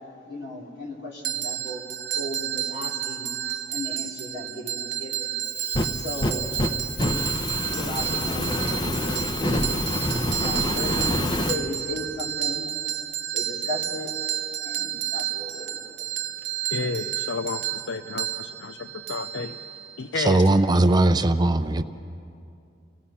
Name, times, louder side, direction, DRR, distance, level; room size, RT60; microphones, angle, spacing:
voice 1, 0.2-1.8 2.1-3.3 3.7-5.4 5.9-6.5 7.1-7.2 7.7-9.7 10.3-12.7 13.3-14.1 14.6-16.1, left 1 dB, 65° left, -2 dB, 3.2 m, -36 dB
sound 1, 1.2-20.0, right 11 dB, 65° right, 0.9 m, -31 dB
Fire, 5.4-11.6, left 1 dB, 25° left, 0.8 m, -27 dB
voice 2, 16.7-19.6 20.0-20.4, left 4 dB, 80° left, 9 dB, 0.5 m, -31 dB
voice 3, 20.2-21.8, right 2 dB, 25° right, 9 dB, 0.5 m, -19 dB
28.0 x 18.0 x 5.7 m, 2.5 s
head